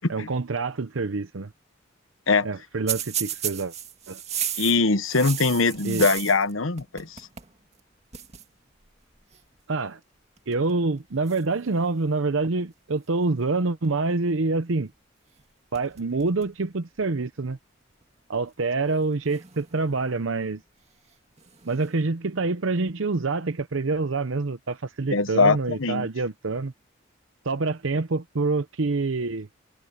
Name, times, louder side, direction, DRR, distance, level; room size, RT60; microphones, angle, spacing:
voice 1, 0.1-1.5 2.4-3.7 4.1-4.2 5.8-6.1 9.7-10.0 10.5-14.9 15.7-17.6 18.3-20.6 21.6-26.7 27.4-29.5, right 3 dB, 75° right, 0.8 m, -26 dB
sound 1, 2.9-6.5 6.8-7.5 7.8-7.9 8.1-8.4 9.3-9.6 10.4-10.7 11.3-12.3 15.3-15.4 15.7-16.6 17.0-17.1 18.0-18.1 19.2-20.1 21.4-21.9, right 9 dB, 35° right, 2.1 m, -34 dB
voice 2, 4.6-7.2 25.1-26.1, left 3 dB, 80° left, 1.1 m, -22 dB
head